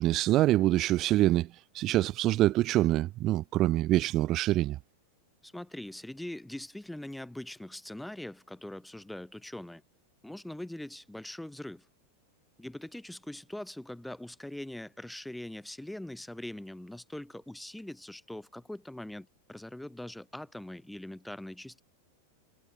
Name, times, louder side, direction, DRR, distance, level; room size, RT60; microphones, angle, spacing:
voice 1, 0.0-1.5 1.7-4.8, right 15 dB, 35° right, 2.6 m, -25 dB
voice 2, 5.4-9.8 10.2-11.9 12.6-21.8, left 1 dB, 5° left, 5.4 m, -42 dB
figure-of-eight pair, 90°, 0 cm